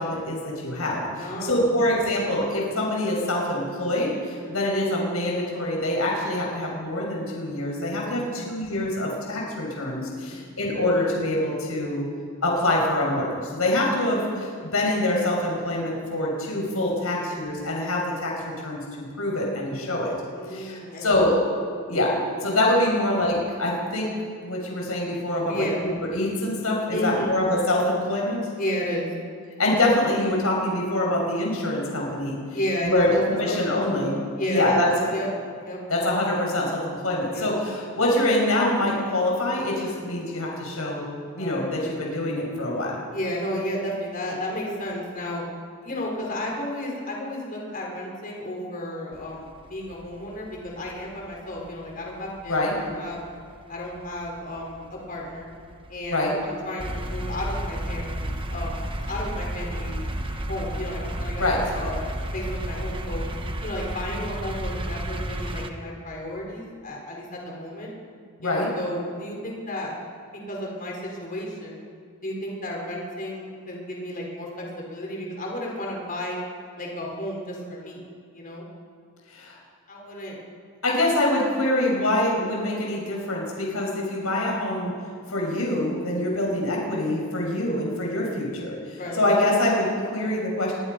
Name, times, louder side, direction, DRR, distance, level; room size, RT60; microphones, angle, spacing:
voice 1, 0.0-12.0 12.4-20.1 20.5-21.4 21.9-22.1 22.4-24.1 24.4-28.4 29.6-32.4 32.8-34.2 34.5-34.9 35.9-41.0 41.3-43.0 52.5-52.7 56.1-56.3 61.4-61.6 68.4-68.7 79.3-79.6 80.8-84.9 85.3-90.7, left 1 dB, 85° left, -2 dB, 6.4 m, -25 dB
voice 2, 1.2-1.9 8.2-8.5 10.1-10.4 17.0-17.3 20.3-21.3 22.9-23.2 25.4-25.9 26.9-27.4 28.6-29.1 32.5-33.2 33.6-34.0 34.4-35.3 35.6-35.8 37.3-37.5 41.4-41.9 43.1-45.4 45.8-53.3 53.7-55.5 55.9-60.0 60.5-61.9 62.3-63.3 63.6-67.9 68.4-69.9 70.3-71.8 72.2-76.4 76.8-78.1 78.3-78.6 79.9-80.4 86.1-86.3 88.9-89.2, left 1 dB, 40° left, -1 dB, 5.0 m, -33 dB
sound 1, 49.1-65.7, right 1 dB, 25° right, 1.4 m, -32 dB
26.0 x 22.0 x 5.5 m, 2.2 s
head